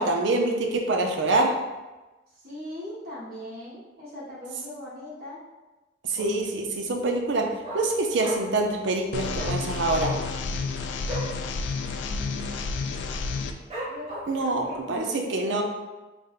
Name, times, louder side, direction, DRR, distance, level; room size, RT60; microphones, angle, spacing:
voice 1, 0.0-1.5 6.0-7.5 7.7-10.1 14.3-15.6, right 2 dB, 70° right, 2 dB, 0.5 m, -25 dB
voice 2, 2.4-5.4 11.7-12.6 13.9-15.6, left 1 dB, 55° right, -7 dB, 1.3 m, -40 dB
Dog, 6.1-6.6 6.9-7.0 7.2-8.7 8.9-9.1 9.3-9.6 10.0-11.4 11.7-11.9 12.2-12.6 13.0-13.1 13.7-14.5 15.0-15.1, right 1 dB, 35° right, 0.9 m, -36 dB
sound 1, 9.1-13.5, left 4 dB, 70° left, 0.3 m, -30 dB
3.5 x 2.1 x 3.9 m, 1.1 s
head